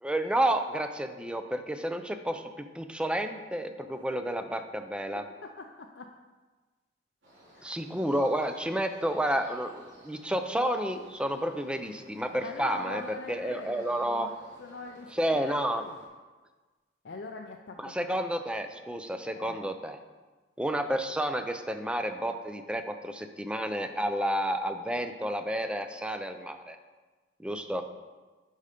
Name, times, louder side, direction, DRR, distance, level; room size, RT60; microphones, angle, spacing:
voice 1, 0.0-5.2 7.6-13.0 13.3-14.3 15.1-15.8 17.8-20.0 20.6-26.8 27.4-27.8, right 1 dB, 5° right, 8 dB, 0.5 m, -30 dB
voice 2, 5.4-6.1 7.6-8.0 12.3-15.1 15.3-16.0 17.0-17.9 19.3-19.6, left 3 dB, 65° left, 2 dB, 0.5 m, -42 dB
sound 1, 7.2-16.1, equal, 90° right, 3.1 m, -55 dB
8.4 x 5.6 x 5.2 m, 1.3 s
head